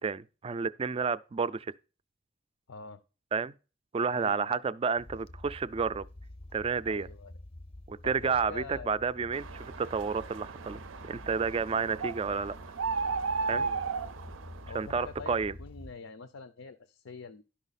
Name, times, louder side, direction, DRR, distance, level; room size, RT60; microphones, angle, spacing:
voice 1, 0.0-1.7 3.3-3.5 3.9-6.1 6.5-7.1 7.9-10.8 11.1-12.5 13.5-13.7 14.7-15.5, right 5 dB, 30° right, 0.3 m, -30 dB
voice 2, 2.7-3.0 4.1-4.6 6.9-7.3 8.0-9.0 13.5-14.0 14.7-17.4, left 4 dB, 85° left, 0.5 m, -45 dB
sound 1, 5.0-15.9, left 1 dB, 30° left, 0.5 m, -48 dB
sound 2, 9.3-14.9, right 4 dB, 85° right, 0.5 m, -35 dB
11.5 x 5.6 x 4.1 m
head